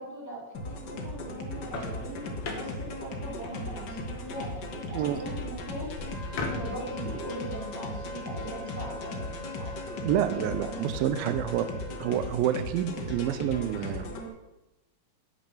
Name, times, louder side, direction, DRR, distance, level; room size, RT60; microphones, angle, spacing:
voice 1, 0.0-5.9 6.5-10.8, right 1 dB, 5° left, -3 dB, 2.4 m, -41 dB
sound 1, 0.5-14.3, left 1 dB, 75° left, 0.9 m, -38 dB
sound 2, 1.4-7.1, left 3 dB, 50° left, 1.5 m, -40 dB
Wind instrument woodwind instrument, 6.0-12.2, left 3 dB, 35° left, 2.4 m, -43 dB
voice 2, 10.0-11.7 12.0-14.1, right 10 dB, 85° right, 11 dB, 2.4 m, -28 dB
8.8 x 8.2 x 7.0 m, 0.99 s
omnidirectional pair, 4.2 m